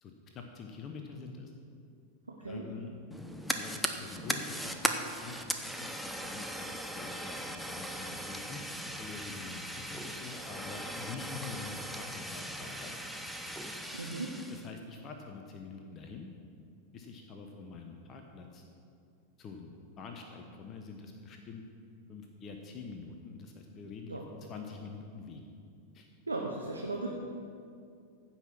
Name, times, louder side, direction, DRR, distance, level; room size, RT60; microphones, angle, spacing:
voice 1, 0.0-1.5 2.5-2.9 3.5-8.6 9.0-12.9 14.5-16.3 16.9-18.6 19.4-21.6 22.1-24.2 24.5-25.4 25.9-26.1, left 4 dB, 30° left, 3 dB, 1.0 m, -46 dB
voice 2, 2.3-2.6 13.9-14.3 24.1-24.2 26.3-27.1, right 3 dB, 80° right, -1 dB, 1.0 m, -36 dB
Fire, 3.1-14.7, equal, ahead, 0.8 m, -38 dB
15.0 x 5.8 x 5.9 m, 2.4 s
figure-of-eight pair, 90°, 0 cm